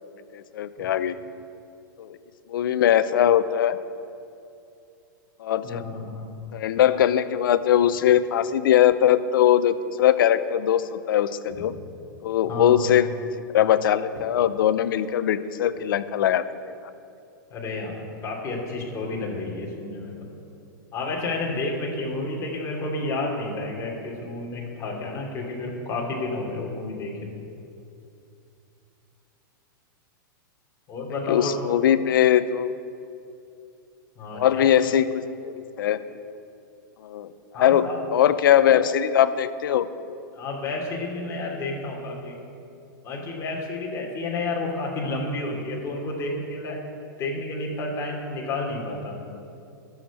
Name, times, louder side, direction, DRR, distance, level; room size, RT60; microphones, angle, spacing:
voice 1, 0.3-1.1 2.0-2.2 2.5-3.8 5.4-5.8 6.5-11.7 12.2-13.1 13.5-16.4 31.3-32.7 34.3-36.0 37.0-37.3 37.5-39.9, left 10 dB, 75° left, 13 dB, 0.7 m, -21 dB
voice 2, 5.6-6.3 11.5-11.7 12.5-12.9 17.5-20.3 20.9-27.4 30.9-31.5 34.2-34.7 37.5-38.0 40.3-42.4 43.0-46.8 47.2-49.2, left 2 dB, 25° left, -2 dB, 3.0 m, -31 dB
11.5 x 7.3 x 8.6 m, 2.6 s
supercardioid pair, 145°, 11 cm